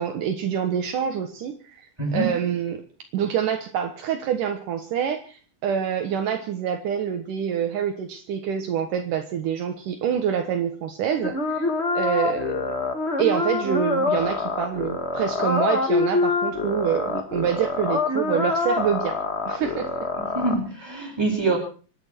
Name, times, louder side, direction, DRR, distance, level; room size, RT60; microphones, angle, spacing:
voice 1, 0.0-2.8 3.1-11.7 11.9-12.6 13.2-19.2 19.5-19.9, right 8 dB, 70° right, 5 dB, 2.8 m, -26 dB
voice 2, 2.0-2.4 20.3-21.6, right 3 dB, 5° right, -3 dB, 7.8 m, -24 dB
sound 1, 11.2-20.5, left 3 dB, 35° left, 1.1 m, -25 dB
26.0 x 11.0 x 4.5 m, 0.40 s
omnidirectional pair, 4.0 m